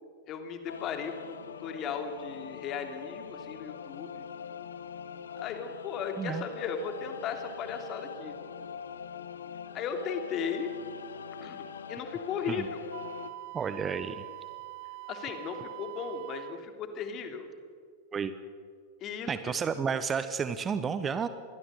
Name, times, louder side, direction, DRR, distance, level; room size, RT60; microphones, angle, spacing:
voice 1, 0.3-4.2 5.4-8.3 9.7-10.7 11.4-11.6 11.9-12.8 15.1-17.5 19.0-19.5, left 6 dB, 35° left, 6 dB, 3.1 m, -36 dB
sound 1, 0.7-13.3, left 7 dB, 70° left, 1.2 m, -43 dB
Wind instrument woodwind instrument, 12.9-16.6, right 19 dB, 50° right, 0.7 m, -44 dB
voice 2, 13.5-14.2 18.1-18.3 19.3-21.3, right 6 dB, 20° right, 13 dB, 1.2 m, -31 dB
26.0 x 21.5 x 6.7 m, 2.1 s
figure-of-eight pair, 90°, 0 cm